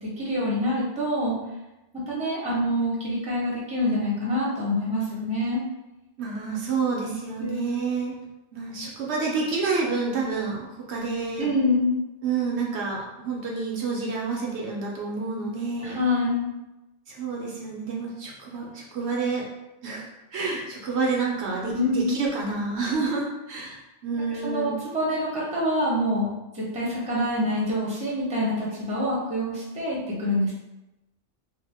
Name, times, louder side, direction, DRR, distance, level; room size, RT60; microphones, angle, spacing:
voice 1, 0.0-1.4 2.1-5.6 7.4-7.9 11.4-12.0 15.8-16.5 21.7-22.2 24.3-26.3 26.5-30.5, left 1 dB, 5° right, -6 dB, 0.7 m, -26 dB
voice 2, 6.2-8.2 8.5-11.5 12.2-16.0 17.1-19.5 19.8-24.8, right 4 dB, 70° right, -2 dB, 0.8 m, -29 dB
2.7 x 2.1 x 3.3 m, 0.97 s
omnidirectional pair, 1.2 m